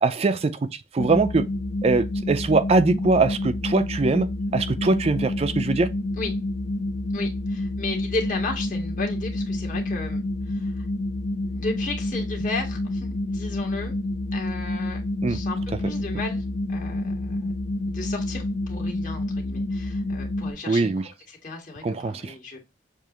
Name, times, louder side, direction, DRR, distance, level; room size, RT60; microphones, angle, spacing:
voice 1, 0.0-1.5 1.8-5.9 15.2-15.4 20.7-21.0 21.8-22.3, right 3 dB, 35° right, 0.4 m, -22 dB
sound 1, 1.0-20.5, left 1 dB, 80° left, 0.8 m, -29 dB
voice 2, 7.1-10.9 11.4-13.9 14.3-15.0 15.3-17.6 17.9-20.9 21.3-22.6, left 3 dB, 45° left, 1.7 m, -34 dB
6.8 x 2.5 x 2.9 m
head